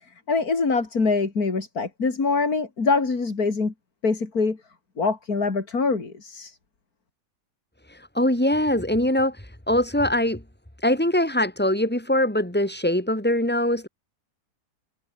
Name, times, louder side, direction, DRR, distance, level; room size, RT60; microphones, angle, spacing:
voice 1, 0.3-3.7 4.0-4.6 5.0-6.6, left 4 dB, 65° left, 3.6 m, -24 dB
voice 2, 7.9-10.4 10.8-13.9, left 1 dB, 5° left, 2.9 m, -22 dB
omnidirectional pair, 1.7 m